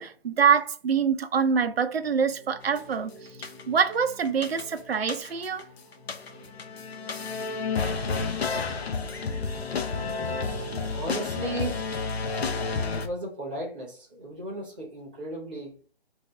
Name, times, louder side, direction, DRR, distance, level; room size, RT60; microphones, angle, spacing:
voice 1, 0.0-3.1 3.4-5.7, right 6 dB, 65° right, 0.7 m, -25 dB
sound 1, 1.6-12.2, equal, 35° left, 0.7 m, -45 dB
sound 2, 2.8-2.9 3.4-3.9 4.2-5.6 5.9-13.1, left 4 dB, 75° left, 0.7 m, -31 dB
voice 2, 10.8-12.0 13.0-15.8, right 1 dB, 10° right, 0.4 m, -35 dB
3.3 x 2.6 x 3.5 m
hypercardioid pair, 155°, 32 cm